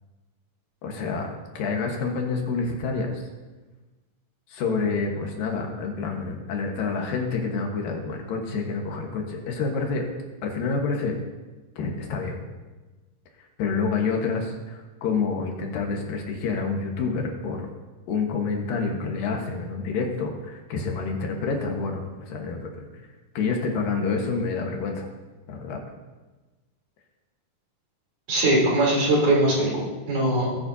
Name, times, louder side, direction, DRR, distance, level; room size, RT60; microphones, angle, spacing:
voice 1, 0.8-1.3 1.5-3.2 4.5-10.0 10.4-11.2 11.8-12.4 13.6-17.7 18.1-22.9 23.3-25.1 25.5-25.8, left 4 dB, 80° left, 1 dB, 3.1 m, -28 dB
voice 2, 28.3-30.6, right 1 dB, 65° right, -6 dB, 5.0 m, -21 dB
20.0 x 9.3 x 2.8 m, 1.2 s
omnidirectional pair, 4.0 m